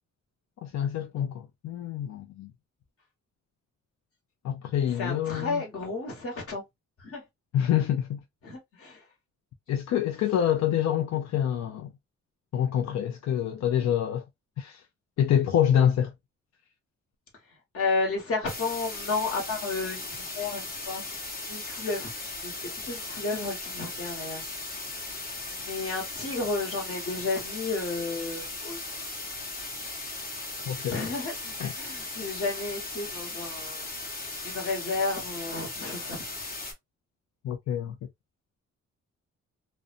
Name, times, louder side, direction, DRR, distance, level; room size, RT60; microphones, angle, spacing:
voice 1, 0.6-2.5 4.4-5.6 7.5-8.2 9.7-11.9 12.5-14.2 14.6-14.8 15.2-16.1 30.7-31.0 31.6-31.7 37.4-37.9, left 10 dB, 65° left, 0.4 m, -26 dB
voice 2, 5.0-6.6 7.0-7.2 8.4-9.0 17.7-21.0 21.5-22.1 22.4-22.6 22.8-24.4 25.5-28.9 30.9-33.9 34.4-36.2, left 3 dB, 50° left, 1.2 m, -32 dB
sound 1, 18.5-36.7, left 2 dB, 30° left, 0.9 m, -37 dB
2.5 x 2.1 x 2.5 m
cardioid pair, 115°, 29 cm